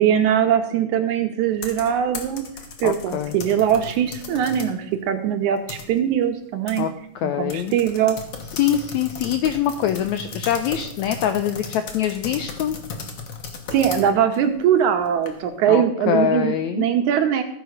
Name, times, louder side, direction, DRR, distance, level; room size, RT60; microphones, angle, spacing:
voice 1, 0.0-2.4 2.8-6.9 7.2-8.2 13.7-17.4, right 9 dB, 70° right, 6 dB, 2.1 m, -21 dB
sound 1, 1.5-4.8 5.2-6.2 6.7-6.8 7.1-7.2 7.5-15.6, left 5 dB, 55° left, 2.0 m, -36 dB
voice 2, 2.8-3.3 6.8-6.9 7.1-7.7 8.6-12.8 15.7-16.9, left 10 dB, 90° left, 8 dB, 1.6 m, -24 dB
15.0 x 5.0 x 6.4 m, 0.70 s
omnidirectional pair, 3.9 m